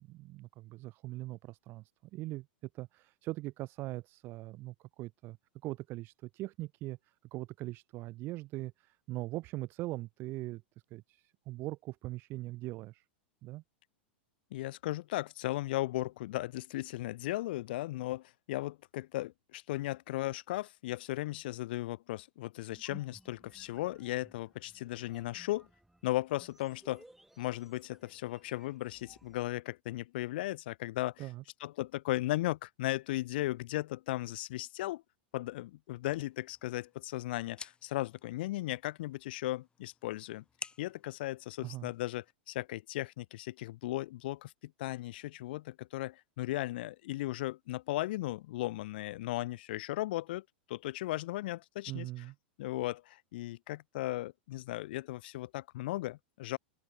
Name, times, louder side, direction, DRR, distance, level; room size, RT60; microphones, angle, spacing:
voice 1, 0.0-2.5 2.7-5.4 5.6-10.6 10.9-13.0 13.4-13.6 31.2-31.4 41.6-41.9 51.9-52.3, right 18 dB, 40° right, 0.4 m, -41 dB
voice 2, 14.5-25.7 26.0-27.0 27.4-31.3 31.6-35.0 35.3-40.4 40.8-52.1 52.6-56.6, left 17 dB, 65° left, 0.5 m, -36 dB
sound 1, 22.7-29.4, right 1 dB, 5° right, 3.3 m, -60 dB
sound 2, 36.3-42.3, left 5 dB, 15° left, 1.2 m, -53 dB
open air
hypercardioid pair, 100°, 6 cm